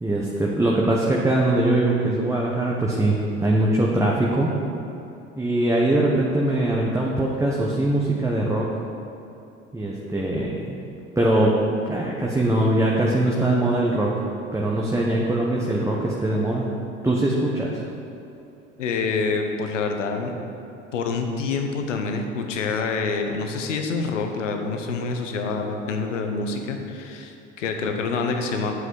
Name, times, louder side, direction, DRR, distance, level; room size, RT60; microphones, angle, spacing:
voice 1, 0.0-4.5 5.4-8.6 9.7-10.8 11.2-11.5 11.9-14.1 14.5-16.7 17.0-17.8, right 1 dB, 10° right, -3 dB, 1.1 m, -22 dB
voice 2, 18.8-20.3 20.9-28.7, left 4 dB, 80° left, 4 dB, 1.0 m, -27 dB
8.5 x 7.6 x 4.8 m, 2.8 s
hypercardioid pair, 65°, 37 cm